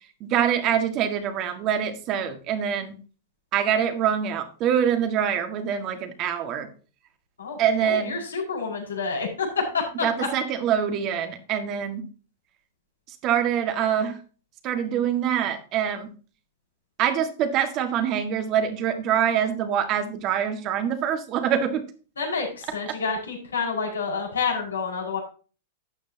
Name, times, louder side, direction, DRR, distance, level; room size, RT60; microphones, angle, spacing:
voice 1, 0.2-3.0 3.5-6.7 7.6-8.1 10.0-12.0 13.2-14.2 14.6-16.1 17.0-21.9 22.9-23.0, right 9 dB, 40° right, 7 dB, 1.8 m, -25 dB
voice 2, 7.4-9.5 9.7-10.3 22.2-25.2, left 5 dB, 90° left, -1 dB, 5.0 m, -29 dB
12.5 x 8.7 x 2.9 m, 0.37 s
hypercardioid pair, 110°, 0 cm